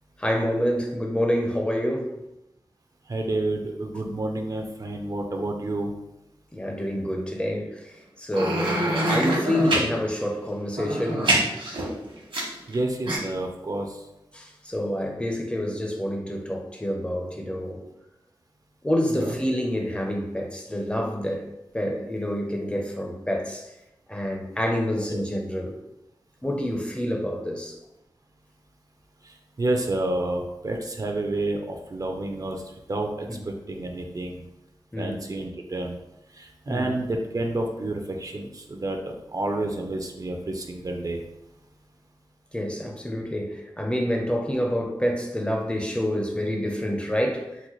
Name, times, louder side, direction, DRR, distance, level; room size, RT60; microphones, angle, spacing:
voice 1, 0.2-2.2 6.5-7.8 8.2-11.3 14.3-17.8 18.8-21.5 21.7-23.7 24.1-25.8 26.4-27.7 33.3-33.4 34.9-35.2 36.7-36.9 42.5-47.6, equal, 10° left, 2 dB, 0.5 m, -27 dB
voice 2, 3.1-5.9 9.3-9.4 12.7-14.0 19.1-19.3 25.1-25.2 29.2-32.6 32.9-33.3 33.7-34.4 35.0-36.0 36.3-41.2, right 2 dB, 45° right, 3 dB, 0.4 m, -29 dB
sound 1, 8.3-9.9 10.7-12.7 13.1-13.2, right 1 dB, 75° right, 1.1 m, -24 dB
4.0 x 2.2 x 3.0 m, 0.90 s
wide cardioid pair, 75°, 9 cm